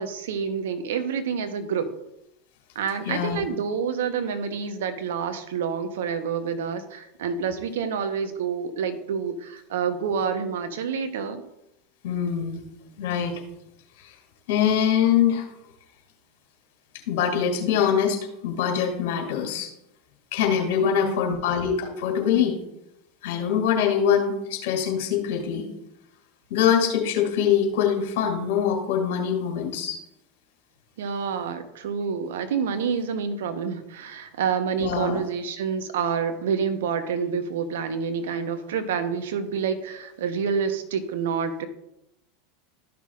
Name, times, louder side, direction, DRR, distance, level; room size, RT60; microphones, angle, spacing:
voice 1, 0.0-1.9 2.7-11.4 20.7-21.4 31.0-41.7, right 6 dB, 70° right, 9 dB, 0.9 m, -28 dB
voice 2, 3.0-3.4 12.0-12.6 13.0-13.4 14.5-15.5 17.1-19.7 20.3-22.6 23.2-25.7 26.5-30.0 34.8-35.2, left 8 dB, 65° left, 2 dB, 2.2 m, -23 dB
13.0 x 6.0 x 2.4 m, 0.82 s
hypercardioid pair, 85°, 0 cm